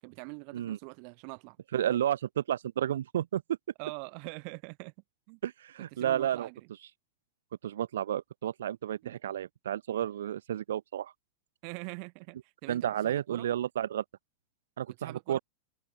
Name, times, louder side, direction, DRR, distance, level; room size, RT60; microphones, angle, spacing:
voice 1, 0.0-1.6 3.8-4.9 5.3-5.4 5.9-6.7 9.0-9.2 11.6-13.5 15.0-15.4, right 40 dB or more, 50° right, 6.0 m, -44 dB
voice 2, 1.7-3.6 5.4-6.5 7.6-11.1 12.7-14.0 14.8-15.4, right 11 dB, 90° right, 7.1 m, -31 dB
supercardioid pair, 145°, 0 cm